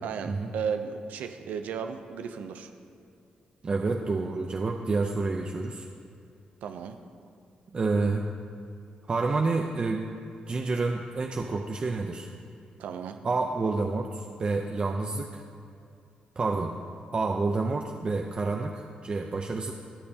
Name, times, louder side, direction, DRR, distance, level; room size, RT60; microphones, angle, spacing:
voice 1, 0.0-2.7 6.6-7.0 12.8-13.2, right 7 dB, 85° right, 7 dB, 0.5 m, -34 dB
voice 2, 3.6-5.9 7.7-8.3 9.1-10.1 10.5-12.3 13.2-15.4 16.4-16.7 17.1-19.7, right 3 dB, 40° right, 2 dB, 0.6 m, -28 dB
15.5 x 6.7 x 2.8 m, 2.5 s
cardioid pair, 75°, 3 cm